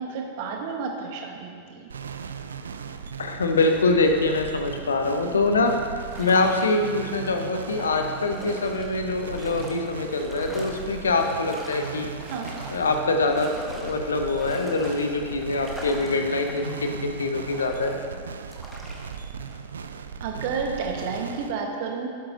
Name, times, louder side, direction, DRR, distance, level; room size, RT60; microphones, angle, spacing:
voice 1, 0.0-1.9 12.2-12.5 20.2-22.1, right 5 dB, 50° right, 2 dB, 1.3 m, -31 dB
sound 1, 1.9-21.5, right 6 dB, 70° right, 0.4 m, -38 dB
voice 2, 3.2-12.1 12.7-18.0, left 3 dB, 70° left, 5 dB, 0.8 m, -24 dB
sound 2, 6.0-19.6, equal, ahead, 1.3 m, -43 dB
12.0 x 8.3 x 2.8 m, 2.1 s
figure-of-eight pair, 90°, 0 cm